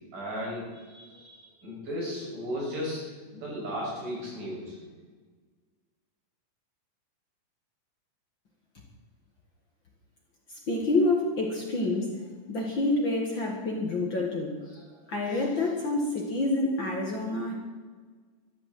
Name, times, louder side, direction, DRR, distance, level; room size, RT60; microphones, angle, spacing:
voice 1, 0.1-3.0 3.3-4.8, equal, 75° right, -5 dB, 8.2 m, -35 dB
voice 2, 10.5-12.2 12.5-17.5, left 2 dB, 40° left, 0 dB, 2.2 m, -28 dB
13.5 x 11.5 x 7.7 m, 1.5 s
omnidirectional pair, 3.8 m